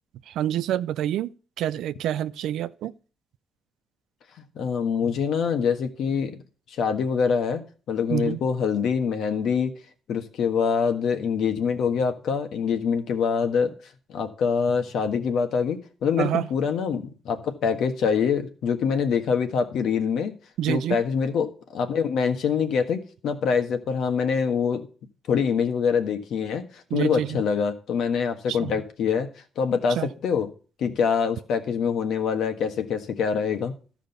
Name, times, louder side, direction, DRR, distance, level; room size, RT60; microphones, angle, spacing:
voice 1, 0.4-1.3 1.6-2.9 8.1-8.4 16.2-16.5 20.6-21.0 26.9-27.4 28.5-28.7 30.0-30.1, right 11 dB, 85° right, 0.5 m, -27 dB
voice 2, 4.5-6.4 6.7-7.6 7.9-9.7 10.1-13.7 14.1-20.3 20.7-24.9 25.3-29.3 29.6-30.5 30.8-33.7, left 6 dB, 75° left, 1.5 m, -25 dB
13.0 x 5.1 x 6.8 m
cardioid pair, 90°, 0 cm